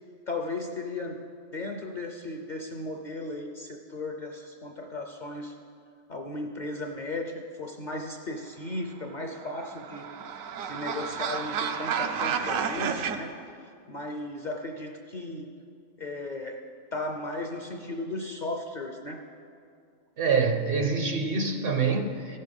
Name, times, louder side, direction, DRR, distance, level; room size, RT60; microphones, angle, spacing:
voice 1, 0.3-1.2 1.5-5.6 6.1-10.1 10.7-13.4 13.9-15.5 16.0-16.6 16.9-19.2, left 2 dB, 50° left, 3 dB, 0.6 m, -36 dB
sound 1, 9.3-13.2, right 6 dB, 85° right, 1.1 m, -31 dB
voice 2, 20.2-22.4, right 4 dB, 55° right, 5 dB, 0.7 m, -26 dB
15.5 x 6.6 x 5.2 m, 2.4 s
omnidirectional pair, 1.4 m